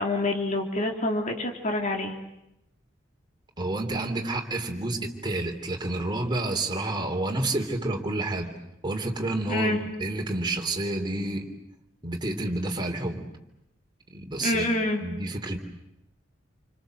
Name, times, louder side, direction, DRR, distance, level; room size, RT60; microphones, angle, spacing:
voice 1, 0.0-2.1 9.5-9.8 14.4-15.0, left 2 dB, 40° left, 2 dB, 3.4 m, -27 dB
voice 2, 3.6-8.5 8.8-11.4 12.0-13.3 14.1-14.7 15.0-15.6, right 2 dB, 25° right, 2 dB, 3.3 m, -29 dB
28.5 x 25.5 x 7.9 m, 0.86 s
head